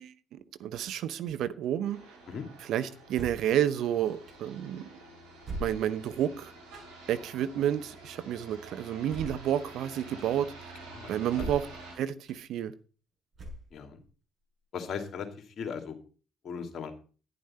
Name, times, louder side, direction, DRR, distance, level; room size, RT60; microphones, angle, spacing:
voice 1, 0.0-2.0 2.6-4.9 5.6-6.5 7.1-10.5 11.1-11.7 11.9-12.7, right 10 dB, 65° right, 0.8 m, -30 dB
sound 1, 1.9-12.0, right 3 dB, 80° right, 4.1 m, -49 dB
sound 2, 3.1-3.5 4.3-4.4 5.4-6.1 6.7-6.9 9.1-9.5 10.2-10.3 11.3-11.8 12.3-12.4 13.3-13.9, right 1 dB, 40° right, 7.3 m, -40 dB
voice 2, 10.9-11.5 13.7-14.0 14.7-15.3 15.6-16.0 16.4-16.9, left 6 dB, 55° left, 2.5 m, -38 dB
10.5 x 10.5 x 4.3 m
hypercardioid pair, 50°, 0 cm